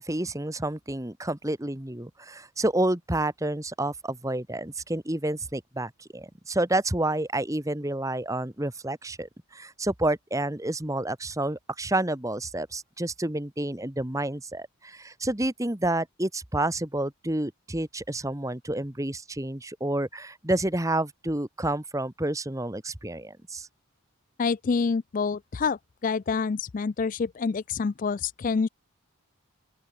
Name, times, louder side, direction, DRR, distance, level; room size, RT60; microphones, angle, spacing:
voice 1, 0.0-23.7, right 1 dB, 15° right, 1.3 m, -29 dB
voice 2, 24.4-28.7, left 5 dB, 40° left, 0.3 m, -27 dB
open air
head